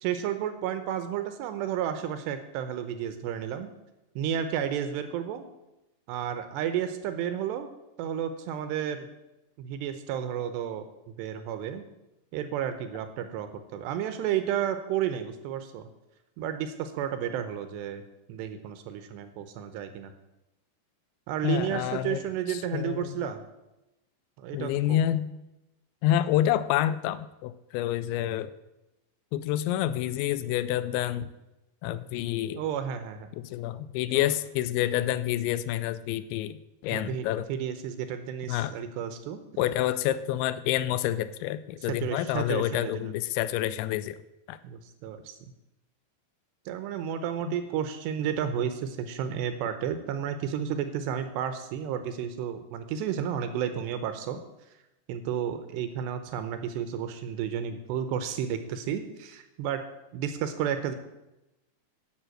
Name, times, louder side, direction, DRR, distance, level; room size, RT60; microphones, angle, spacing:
voice 1, 0.0-3.7 4.2-5.5 6.1-7.7 8.0-9.1 9.6-10.9 11.2-11.8 12.3-15.9 16.4-18.0 18.3-20.1 21.3-23.4 24.4-25.0 32.6-33.3 34.1-34.3 36.9-39.4 42.0-43.1 44.6-45.4 46.7-54.4 55.1-59.8 60.1-61.0, right 9 dB, 80° right, 9 dB, 2.7 m, -32 dB
voice 2, 21.4-22.2 22.5-23.3 24.5-25.3 26.0-28.5 29.3-31.3 31.8-32.6 33.3-36.6 36.8-37.5 38.5-38.7 39.6-44.2 44.5-44.6 47.5-47.6, left 12 dB, 85° left, 15 dB, 2.8 m, -28 dB
11.0 x 7.3 x 7.7 m, 0.96 s
omnidirectional pair, 5.3 m